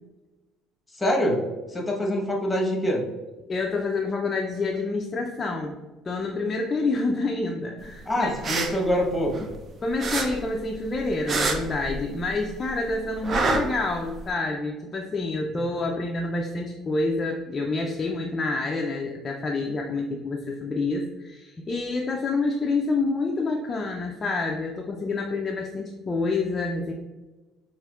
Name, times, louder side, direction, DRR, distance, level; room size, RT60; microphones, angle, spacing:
voice 1, 0.9-1.4 1.7-3.1 8.1-9.5, equal, 10° left, -1 dB, 1.0 m, -25 dB
voice 2, 3.5-5.8 6.0-8.3 9.8-26.9, left 3 dB, 25° left, 0 dB, 0.4 m, -28 dB
sound 1, 8.2-9.7 10.0-12.4 12.6-14.3, right 3 dB, 35° right, 0.5 m, -27 dB
5.6 x 2.9 x 2.3 m, 1.2 s
cardioid pair, 125°, 0 cm